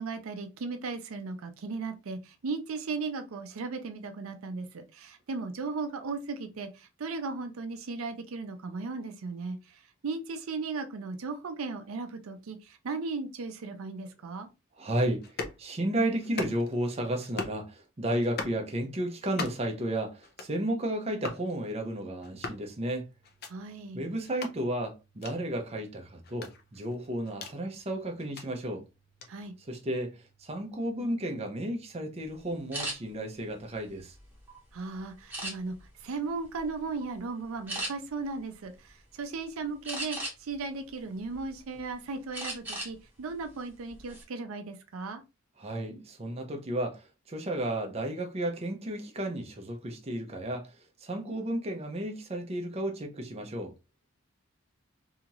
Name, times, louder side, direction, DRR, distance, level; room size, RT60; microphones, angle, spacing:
voice 1, 0.0-9.6 10.0-14.5 23.5-24.0 29.3-29.5 34.7-35.7 36.0-45.2, right 4 dB, 85° right, 0.5 m, -36 dB
voice 2, 14.8-15.3 15.6-23.1 23.9-28.8 29.6-34.1 45.6-50.8 51.0-53.7, right 1 dB, 30° right, 0.6 m, -33 dB
sound 1, 15.2-15.6 16.2-16.8 17.2-17.6 18.2-18.6 19.2-19.7 20.2-20.6 21.2-21.4 22.2-22.6 23.2-23.5 24.2-24.5 25.2-25.3 26.2-27.6 28.2-28.5 29.2-29.3, left 3 dB, 50° left, 0.5 m, -39 dB
sound 2, 22.2-32.2, right 6 dB, 25° left, 0.9 m, -69 dB
sound 3, 32.7-33.0 33.6-34.6 35.3-35.9 36.4-36.6 37.0-37.2 37.7-37.9 39.8-40.6 41.1-41.8 42.3-42.9 43.3-43.5 43.9-44.2, right 1 dB, 10° right, 1.0 m, -36 dB
2.8 x 2.4 x 2.8 m
head